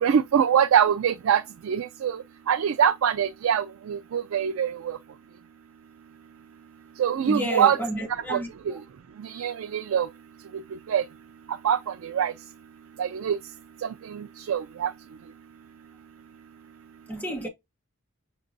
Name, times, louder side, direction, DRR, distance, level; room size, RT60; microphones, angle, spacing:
voice 1, 0.0-2.2 2.5-5.0 7.0-7.8 8.3-8.4 9.2-10.1 10.9-11.0 11.6-12.3 13.0-13.4 13.8-14.9, right 8 dB, 75° right, 0.3 m, -24 dB
voice 2, 7.3-8.5 17.1-17.5, right 1 dB, 10° left, 1.0 m, -30 dB
6.3 x 2.9 x 2.6 m
head